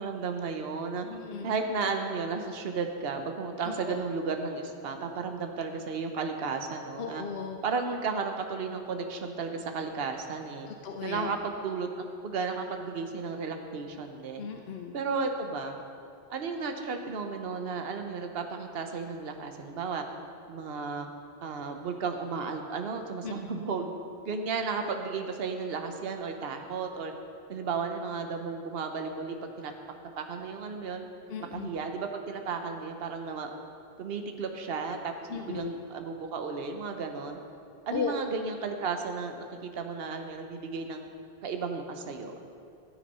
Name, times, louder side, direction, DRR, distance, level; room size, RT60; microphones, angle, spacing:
voice 1, 0.0-1.1 1.4-7.2 7.6-10.7 11.0-14.5 14.9-15.8 16.3-20.1 20.5-21.1 21.4-23.9 24.2-27.1 27.5-29.7 30.2-31.1 31.5-33.6 34.0-37.4 37.9-41.1 41.4-42.5, right 4 dB, 70° right, 5 dB, 1.1 m, -34 dB
voice 2, 1.1-1.5 3.6-4.0 7.0-7.6 10.7-11.3 14.4-14.9 23.2-23.4 31.3-31.7 35.3-35.7 37.9-38.1, left 6 dB, 75° left, 4 dB, 0.9 m, -36 dB
14.0 x 8.3 x 5.5 m, 2.5 s
omnidirectional pair, 1.0 m